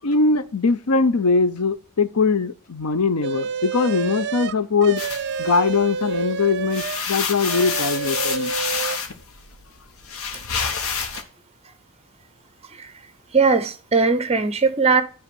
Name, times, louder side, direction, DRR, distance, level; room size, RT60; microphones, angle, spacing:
voice 1, 0.0-5.0 5.4-8.5, left 4 dB, 85° left, 0.7 m, -21 dB
sound 1, 3.2-7.1 7.4-9.0, right 6 dB, 50° right, 0.5 m, -28 dB
sound 2, 5.0-6.2 6.5-11.2, left 6 dB, 70° left, 1.3 m, -28 dB
voice 2, 13.3-15.0, right 4 dB, 30° right, 0.9 m, -19 dB
10.0 x 3.5 x 7.0 m
head